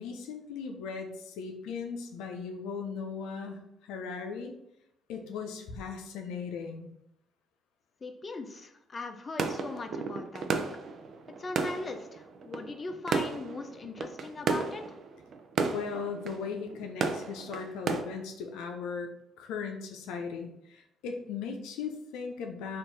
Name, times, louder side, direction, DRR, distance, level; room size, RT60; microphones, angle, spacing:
voice 1, 0.0-4.5 5.1-6.9 15.7-19.1 19.4-22.8, left 5 dB, 85° left, 4 dB, 0.5 m, -38 dB
voice 2, 8.0-10.7 11.4-15.0, left 3 dB, 35° left, 6 dB, 0.6 m, -40 dB
sound 1, 9.4-18.0, right 5 dB, 60° right, 0.5 m, -34 dB
4.5 x 2.5 x 4.0 m, 0.79 s
supercardioid pair, 70°, 0 cm